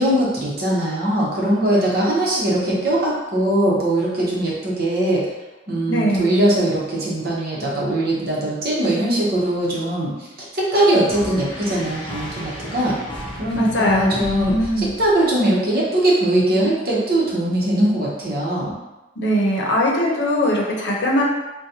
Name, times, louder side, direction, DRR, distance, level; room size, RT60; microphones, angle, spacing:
voice 1, 0.0-5.3 5.7-10.1 10.5-13.0 13.4-18.7, right 1 dB, 55° right, -5 dB, 0.9 m, -20 dB
voice 2, 5.9-6.3 13.5-14.9 19.2-21.2, equal, 70° left, -2 dB, 0.7 m, -21 dB
sound 1, 11.1-15.4, equal, 25° left, 0.5 m, -34 dB
3.9 x 2.2 x 2.8 m, 1.1 s
head